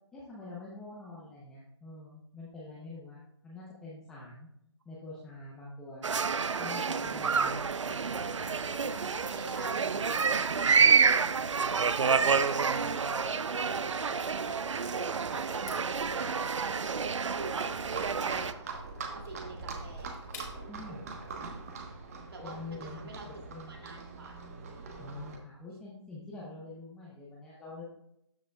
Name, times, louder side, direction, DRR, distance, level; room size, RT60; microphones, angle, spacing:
voice 1, 0.1-4.5 4.9-6.0 6.6-7.6 20.7-21.1 22.4-23.8 25.0-27.8, left 2 dB, 5° left, -7 dB, 0.7 m, -45 dB
sound 1, 6.0-18.5, right 5 dB, 85° right, 0.5 m, -28 dB
voice 2, 7.2-7.5 9.0-11.5 12.1-14.6 14.9-16.9 17.3-18.7 19.1-20.2 22.3-23.3 23.7-24.4, right 2 dB, 55° right, 0 dB, 2.4 m, -45 dB
Livestock farm animals working animals, 7.3-25.4, right 4 dB, 30° right, 1.1 m, -45 dB
sound 2, 15.5-20.8, left 5 dB, 35° left, 1.9 m, -53 dB
13.0 x 5.0 x 2.3 m, 0.78 s
hypercardioid pair, 160°, 15 cm